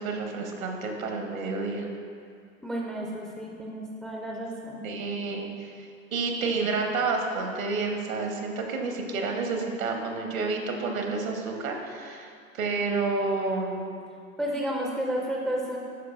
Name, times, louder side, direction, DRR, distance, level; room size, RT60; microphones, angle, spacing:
voice 1, 0.0-1.9 4.8-13.9, right 3 dB, 75° right, 2 dB, 1.1 m, -30 dB
voice 2, 2.6-4.8 14.4-15.8, right 1 dB, ahead, -2 dB, 0.3 m, -31 dB
12.0 x 4.6 x 2.4 m, 2.3 s
figure-of-eight pair, 85°, 42 cm